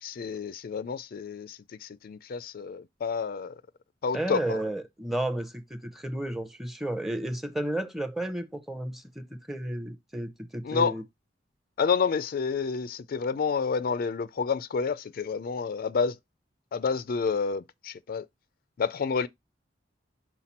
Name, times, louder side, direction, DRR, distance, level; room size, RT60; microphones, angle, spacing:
voice 1, 0.0-3.6 4.0-4.6 10.6-11.0 11.8-16.2 16.7-18.3 18.8-19.3, left 5 dB, 55° left, 0.4 m, -29 dB
voice 2, 4.1-11.0, right 1 dB, ahead, 0.7 m, -32 dB
5.8 x 4.7 x 4.1 m
head